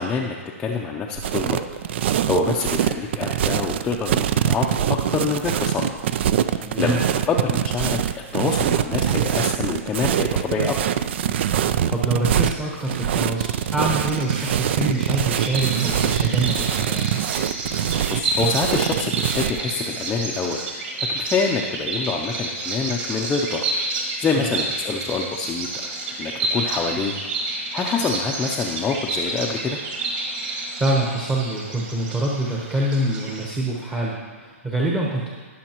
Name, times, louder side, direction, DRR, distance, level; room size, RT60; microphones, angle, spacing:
voice 1, 0.0-1.6 2.0-6.0 6.5-7.0 7.3-8.0 8.3-10.8 18.1-20.6 21.1-23.6 23.9-29.8, left 4 dB, 10° left, -1 dB, 0.6 m, -26 dB
sound 1, 1.2-19.6, right 10 dB, 50° right, 0.4 m, -23 dB
voice 2, 6.6-7.0 11.9-17.1 30.8-35.3, right 2 dB, 10° right, -5 dB, 1.0 m, -25 dB
Bird vocalization bird call bird song, 13.9-33.4, right 2 dB, 35° right, 2.1 m, -30 dB
18.5 x 6.4 x 3.0 m, 1.5 s
hypercardioid pair, 150°, 8 cm